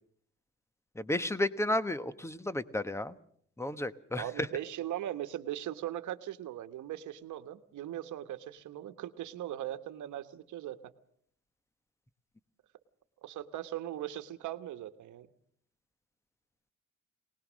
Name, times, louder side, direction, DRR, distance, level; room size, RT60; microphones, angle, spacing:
voice 1, 0.9-3.2 3.6-4.2, left 1 dB, 10° left, 13 dB, 1.1 m, -32 dB
voice 2, 4.2-10.8 13.2-15.3, right 12 dB, 75° right, 10 dB, 1.4 m, -39 dB
24.0 x 19.0 x 6.3 m, 0.64 s
cardioid pair, 90°, 30 cm